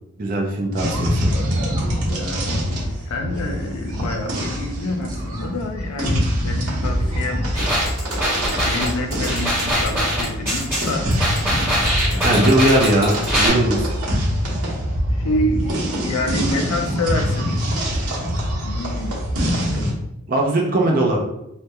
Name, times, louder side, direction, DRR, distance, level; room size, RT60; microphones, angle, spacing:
voice 1, 0.2-1.3 12.2-13.9 20.3-21.2, right 1 dB, 40° right, 0 dB, 0.4 m, -19 dB
sound 1, 0.8-19.9, equal, 90° right, 0.8 m, -24 dB
voice 2, 2.1-7.5 8.6-11.2 12.1-12.5 15.1-17.6 18.6-19.2 19.7-19.8, left 1 dB, 90° left, 4 dB, 0.4 m, -27 dB
sound 2, 7.5-13.5, equal, 10° right, 1.1 m, -22 dB
2.2 x 2.1 x 2.8 m, 0.84 s
head